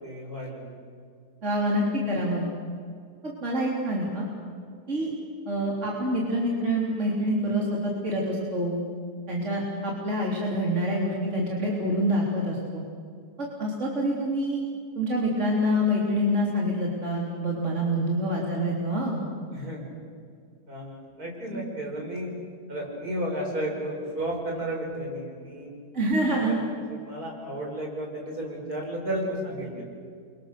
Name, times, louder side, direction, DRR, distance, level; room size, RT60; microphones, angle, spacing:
voice 1, 0.0-0.6 19.5-19.9 20.7-22.3 22.7-25.7 26.4-26.6 26.9-29.8, right 1 dB, 70° right, -1 dB, 6.0 m, -33 dB
voice 2, 1.4-2.5 3.2-4.3 4.9-5.1 5.5-8.8 9.3-12.8 13.4-14.6 14.9-19.2 25.9-26.6, equal, 45° right, -3 dB, 4.1 m, -26 dB
29.5 x 24.5 x 6.8 m, 2.3 s
omnidirectional pair, 1.7 m